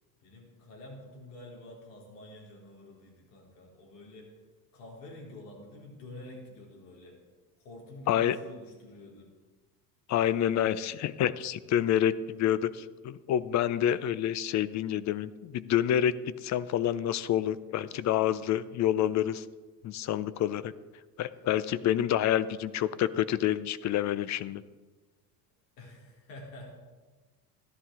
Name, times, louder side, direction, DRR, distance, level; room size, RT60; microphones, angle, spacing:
voice 1, 0.2-4.3 4.7-7.2 7.6-9.3 25.8-26.7, left 1 dB, 75° left, -2 dB, 3.7 m, -48 dB
voice 2, 10.1-19.5 19.8-20.7 21.2-24.6, left 11 dB, 35° left, 16 dB, 0.5 m, -28 dB
14.0 x 11.0 x 3.7 m, 1.3 s
hypercardioid pair, 80°, 49 cm